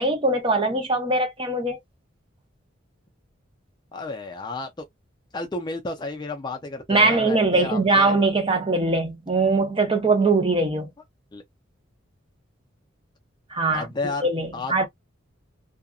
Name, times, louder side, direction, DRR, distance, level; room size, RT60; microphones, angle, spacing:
voice 1, 0.0-1.8 6.9-10.9 13.5-13.9 14.2-14.8, right 3 dB, 25° right, 0.7 m, -21 dB
voice 2, 3.9-4.8 5.3-8.1 11.3-11.4 13.7-14.8, left 3 dB, 20° left, 0.4 m, -32 dB
2.7 x 2.4 x 2.3 m
head